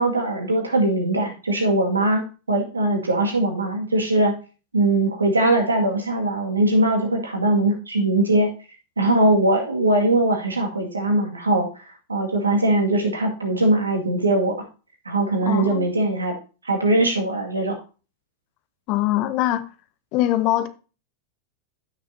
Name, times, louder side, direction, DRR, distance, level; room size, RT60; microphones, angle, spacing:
voice 1, 0.0-4.3 4.7-8.5 9.0-11.7 12.1-14.6 15.1-16.4 16.6-17.8, right 2 dB, 75° right, 2.0 m, -21 dB
voice 2, 15.4-15.9 18.9-19.6 20.1-20.7, left 14 dB, 40° left, 1.0 m, -22 dB
15.5 x 6.1 x 2.7 m
figure-of-eight pair, 90°, 0 cm